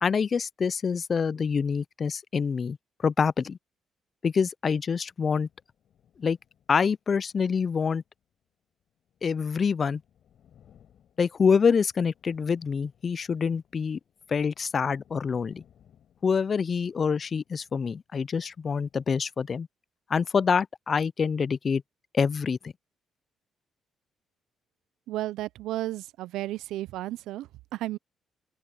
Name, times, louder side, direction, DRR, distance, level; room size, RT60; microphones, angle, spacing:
voice 1, 0.0-2.8 3.0-3.6 4.2-5.5 6.2-6.4 6.7-8.0 9.2-10.0 11.2-14.0 14.3-15.6 16.2-19.7 20.1-21.8 22.1-22.7, left 6 dB, 40° left, 0.3 m, -26 dB
sound 1, 5.0-19.2, left 9 dB, 70° left, 4.8 m, -64 dB
voice 2, 25.1-28.0, right 15 dB, 90° right, 0.4 m, -33 dB
open air
cardioid pair, 90°, 0 cm